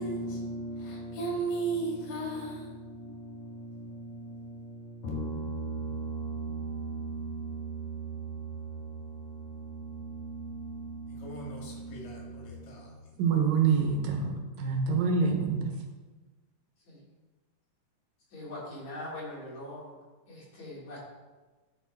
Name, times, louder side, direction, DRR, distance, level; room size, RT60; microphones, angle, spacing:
voice 1, 0.0-12.9, right 3 dB, 85° left, 3.6 m, -37 dB
voice 2, 13.2-15.7, right 5 dB, 80° right, 2.8 m, -26 dB
voice 3, 18.3-20.0 20.3-21.0, left 1 dB, 55° left, 4.3 m, -41 dB
10.0 x 6.0 x 4.5 m
omnidirectional pair, 3.9 m